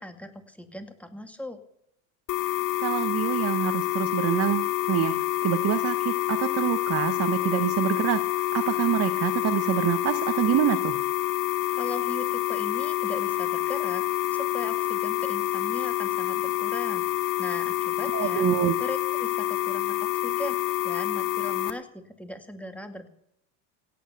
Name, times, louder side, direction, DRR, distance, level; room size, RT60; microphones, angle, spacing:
voice 1, 0.0-1.6 11.7-18.5 18.8-20.6 20.8-23.1, equal, 5° left, 7 dB, 2.1 m, -39 dB
sound 1, 2.3-21.7, left 15 dB, 55° left, 1.4 m, -27 dB
voice 2, 2.8-8.2 8.5-11.0 18.1-18.7, right 11 dB, 40° right, 10 dB, 1.1 m, -26 dB
16.5 x 9.2 x 6.6 m, 0.76 s
supercardioid pair, 120°, 36 cm